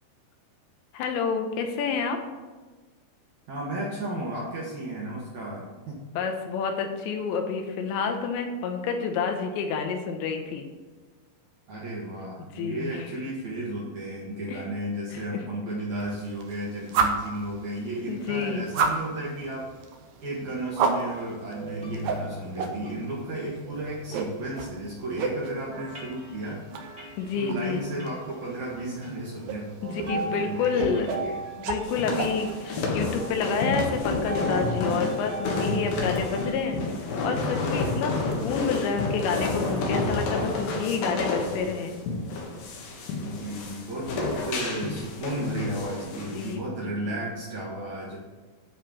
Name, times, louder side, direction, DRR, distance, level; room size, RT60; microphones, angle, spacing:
voice 1, 0.9-2.2 6.2-10.6 12.6-13.1 14.5-14.6 15.1-15.4 18.1-18.6 27.2-27.9 29.8-31.1 31.6-42.0 46.3-47.1, left 5 dB, 80° left, 4 dB, 3.1 m, -29 dB
voice 2, 3.5-6.0 11.7-19.7 20.2-26.6 27.3-29.7 29.9-31.4 43.2-48.2, right 1 dB, 60° right, -5 dB, 2.1 m, -34 dB
sound 1, 15.9-33.1, right 5 dB, 85° right, 1.9 m, -34 dB
sound 2, 21.2-25.1 25.7-28.3 28.8-29.1 29.8-36.5, right 2 dB, 35° right, 0.9 m, -39 dB
sound 3, 31.8-46.5, left 3 dB, 65° left, 2.9 m, -30 dB
10.5 x 4.4 x 7.3 m, 1.3 s
omnidirectional pair, 5.3 m